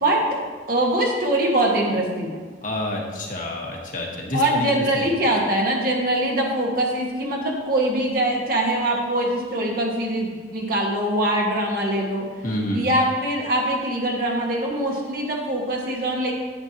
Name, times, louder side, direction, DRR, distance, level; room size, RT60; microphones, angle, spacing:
voice 1, 0.0-0.4 0.7-2.4 4.3-12.2 12.7-16.3, right 1 dB, 50° right, -1 dB, 1.6 m, -23 dB
voice 2, 2.6-4.7 4.9-5.1 12.4-12.8, left 1 dB, 45° left, -1 dB, 1.4 m, -28 dB
9.7 x 9.0 x 2.9 m, 1.4 s
head